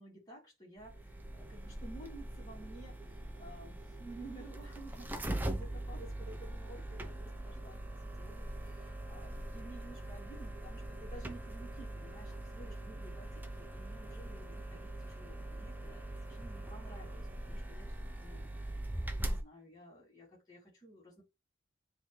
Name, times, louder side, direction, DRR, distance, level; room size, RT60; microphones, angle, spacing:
voice 1, 0.0-5.1 5.5-18.8 19.2-21.2, right 2 dB, 20° left, 3.3 m, -53 dB
sound 1, 0.8-19.4, right 1 dB, 10° right, 0.8 m, -42 dB
9.9 x 3.6 x 3.3 m
head